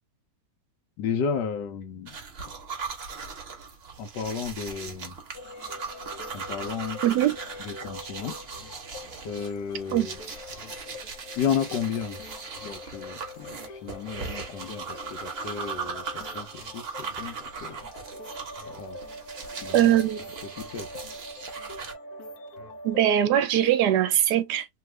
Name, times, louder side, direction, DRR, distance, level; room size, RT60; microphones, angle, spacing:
voice 1, 1.0-2.1 4.0-5.2 6.3-7.0 7.6-8.4 9.2-10.2 11.4-12.2 12.6-16.5 16.7-17.8 18.6-19.0 19.6-19.9 20.6-20.9, left 7 dB, 85° left, 1.4 m, -32 dB
sound 1, 2.1-21.9, right 5 dB, 45° right, 0.9 m, -39 dB
sound 2, 5.3-23.1, left 2 dB, 70° left, 1.2 m, -44 dB
voice 2, 7.0-7.4 9.9-10.1 19.7-20.2 22.8-24.7, right 11 dB, 75° right, 1.1 m, -21 dB
3.2 x 2.3 x 3.0 m
omnidirectional pair, 1.9 m